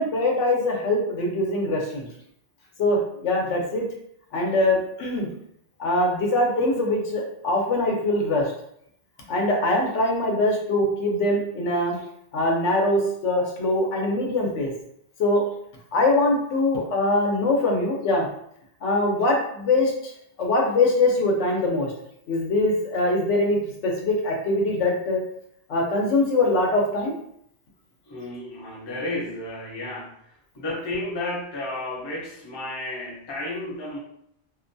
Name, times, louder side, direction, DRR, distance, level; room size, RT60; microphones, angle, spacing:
voice 1, 0.0-2.1 2.8-3.9 4.3-5.3 5.8-8.5 9.3-12.0 12.3-14.7 15.2-15.4 15.9-18.3 18.8-20.1 20.4-21.9 22.3-25.2 25.7-27.1, left 2 dB, 85° left, 0 dB, 1.0 m, -22 dB
voice 2, 28.1-34.0, left 2 dB, 35° left, -3 dB, 0.4 m, -32 dB
2.5 x 2.2 x 2.5 m, 0.71 s
omnidirectional pair, 1.2 m